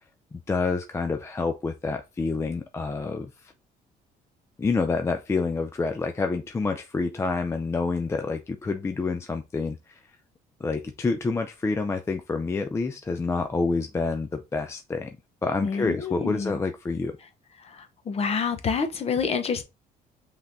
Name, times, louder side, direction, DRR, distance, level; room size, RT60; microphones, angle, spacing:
voice 1, 0.3-3.5 4.6-10.0 10.6-15.2 15.4-17.2, left 4 dB, 15° left, 0.3 m, -28 dB
voice 2, 15.6-16.6 18.1-19.6, left 5 dB, 40° left, 0.8 m, -27 dB
5.5 x 3.3 x 2.6 m
cardioid pair, 110°, 17 cm